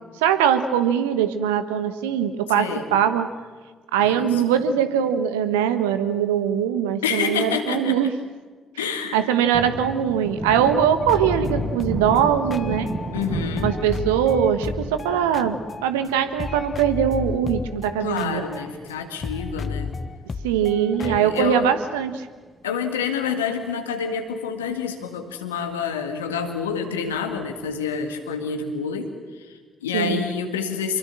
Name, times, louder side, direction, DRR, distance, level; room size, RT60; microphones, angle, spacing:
voice 1, 0.2-3.3 3.9-8.1 9.1-12.9 13.6-18.4 20.4-22.3 29.9-30.2, right 8 dB, 75° right, 10 dB, 1.2 m, -21 dB
voice 2, 2.5-2.9 4.0-4.7 7.0-8.0 8.8-9.3 13.1-13.7 18.0-19.9 21.0-21.7 22.6-31.0, left 6 dB, 80° left, 6 dB, 1.9 m, -28 dB
Thunder, 9.1-19.9 20.2-20.3 20.7-22.2 22.5-22.6 23.0-23.8 24.2-24.3 24.6-24.7 27.1-27.6, right 2 dB, 45° right, 6.4 m, -34 dB
sound 1, 11.0-13.3 13.6-16.1 16.4-21.5, left 4 dB, 40° left, 1.2 m, -33 dB
25.5 x 23.0 x 7.6 m, 1.5 s
figure-of-eight pair, 40°, 0 cm